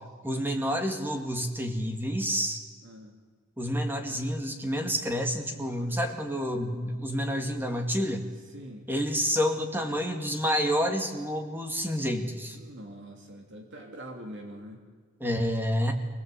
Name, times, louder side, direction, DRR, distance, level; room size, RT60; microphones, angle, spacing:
voice 1, 0.2-2.6 3.6-8.2 8.9-12.6 15.2-15.9, equal, 10° right, 4 dB, 2.2 m, -29 dB
voice 2, 2.8-3.2 5.8-6.0 8.5-8.9 12.5-14.8, equal, 60° right, 3 dB, 2.8 m, -44 dB
25.0 x 19.0 x 8.3 m, 1.5 s
head